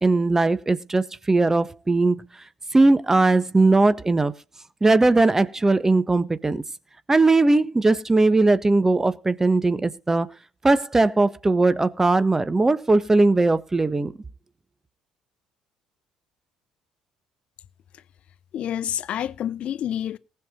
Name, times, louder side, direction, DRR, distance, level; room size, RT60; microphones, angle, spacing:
voice 1, 0.0-2.2 2.7-4.3 4.8-6.6 7.1-10.3 10.6-14.1, right 2 dB, 20° right, 1.3 m, -19 dB
voice 2, 18.5-20.2, left 10 dB, 55° left, 0.8 m, -28 dB
19.0 x 7.0 x 3.9 m
hypercardioid pair, 55°, 2 cm